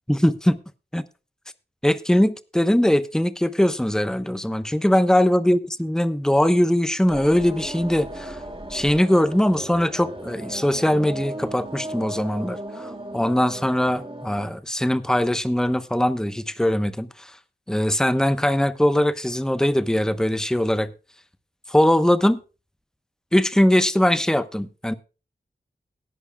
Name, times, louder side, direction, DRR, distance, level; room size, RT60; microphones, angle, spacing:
voice 1, 0.1-0.6 0.9-1.0 1.8-8.4 8.7-17.4 17.7-20.9 21.7-22.4 23.3-24.9, left 1 dB, 5° left, 1.0 m, -21 dB
sound 1, 7.1-14.5, right 1 dB, 30° right, 2.5 m, -36 dB
18.5 x 11.0 x 2.3 m
wide cardioid pair, 50°, 18 cm